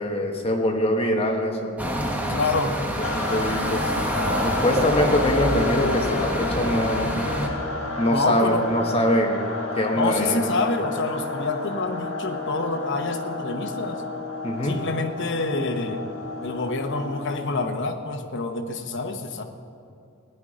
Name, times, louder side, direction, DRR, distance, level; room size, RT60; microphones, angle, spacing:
voice 1, 0.0-2.4 3.1-3.9 4.4-7.1 8.0-9.5 9.8-10.5 14.4-14.8, left 1 dB, 25° left, 2 dB, 1.3 m, -24 dB
sound 1, 1.8-7.5, equal, 5° right, 1.1 m, -27 dB
voice 2, 2.3-2.8 8.0-8.7 10.0-14.0 14.6-16.0 16.4-19.4, left 3 dB, 60° left, 5 dB, 1.1 m, -27 dB
sound 2, 3.0-17.8, left 3 dB, 75° left, 1.4 m, -31 dB
16.0 x 10.5 x 5.0 m, 2.5 s
head